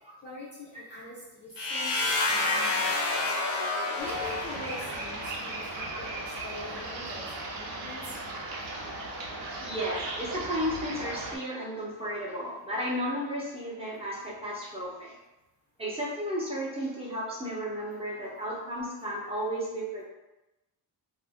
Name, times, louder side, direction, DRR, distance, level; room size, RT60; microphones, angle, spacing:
voice 1, 0.2-3.4 3.9-8.2, left 1 dB, 30° left, -7 dB, 0.4 m, -44 dB
sound 1, 1.6-5.4, left 2 dB, 75° left, 0.6 m, -29 dB
sound 2, 4.0-11.4, right 2 dB, 75° right, 0.7 m, -37 dB
voice 2, 9.6-15.1 15.8-20.0, equal, 15° right, -7 dB, 0.6 m, -33 dB
2.5 x 2.0 x 3.4 m, 1.0 s
wide cardioid pair, 160°, 42 cm